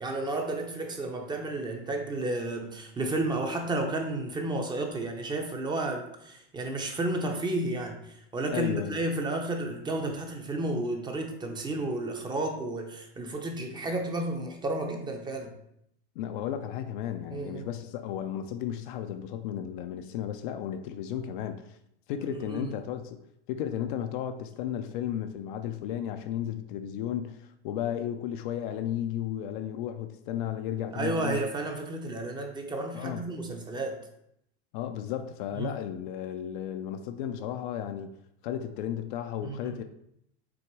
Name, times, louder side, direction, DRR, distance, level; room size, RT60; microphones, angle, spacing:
voice 1, 0.0-15.5 17.3-17.7 22.3-22.7 30.9-34.0 35.6-35.7 39.4-39.7, right 2 dB, 15° right, 0.7 m, -32 dB
voice 2, 8.5-9.0 16.2-21.8 22.1-23.2 23.5-31.4 32.9-33.2 34.7-38.1 38.4-39.8, left 10 dB, 50° left, 0.5 m, -34 dB
6.1 x 3.5 x 4.7 m
supercardioid pair, 140°, 34 cm